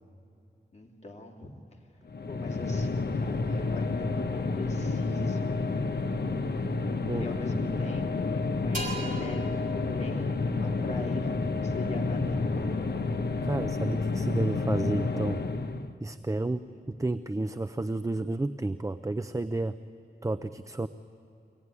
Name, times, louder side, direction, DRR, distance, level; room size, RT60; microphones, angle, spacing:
voice 1, 0.7-1.8 2.3-6.0 6.5-13.1 16.7-16.8, left 2 dB, 40° left, -1 dB, 2.5 m, -42 dB
sound 1, 2.1-15.9, left 3 dB, 70° left, 1.0 m, -30 dB
sound 2, 8.7-12.4, right 2 dB, 50° right, 5.3 m, -41 dB
voice 2, 13.4-15.4 16.0-16.6 17.0-19.8 20.2-20.9, right 2 dB, 20° right, 11 dB, 0.5 m, -31 dB
24.0 x 17.0 x 9.7 m, 2.6 s
wide cardioid pair, 90°, 17 cm